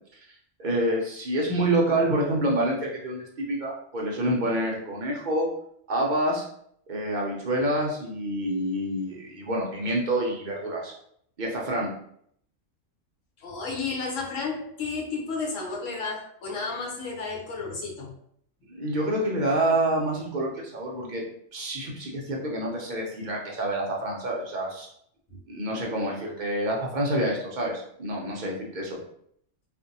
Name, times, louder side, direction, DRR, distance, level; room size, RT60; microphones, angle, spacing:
voice 1, 0.6-5.5 5.9-6.4 6.9-10.9 11.4-11.9 18.7-21.2 21.5-24.9 25.5-29.0, right 1 dB, 50° right, -2 dB, 0.6 m, -27 dB
voice 2, 13.4-18.1, left 4 dB, 80° left, -2 dB, 1.1 m, -32 dB
2.6 x 2.5 x 2.6 m, 0.68 s
omnidirectional pair, 1.3 m